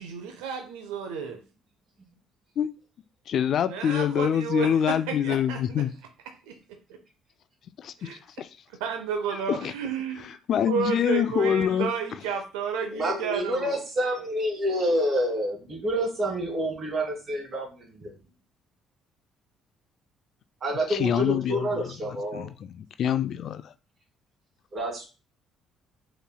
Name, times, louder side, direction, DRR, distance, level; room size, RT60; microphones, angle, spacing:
voice 1, 0.0-1.4 3.7-5.8 6.5-6.6 8.0-8.2 8.8-10.3 10.6-13.8, right 6 dB, 90° right, 0.6 m, -31 dB
voice 2, 3.3-5.9 7.8-8.1 8.4-8.5 9.5-9.7 10.5-11.9 20.9-23.7, left 9 dB, 60° left, 0.3 m, -26 dB
voice 3, 12.9-18.2 20.6-22.5 24.7-25.1, equal, 45° right, 2.3 m, -28 dB
5.3 x 3.2 x 2.2 m
supercardioid pair, 70°, 0 cm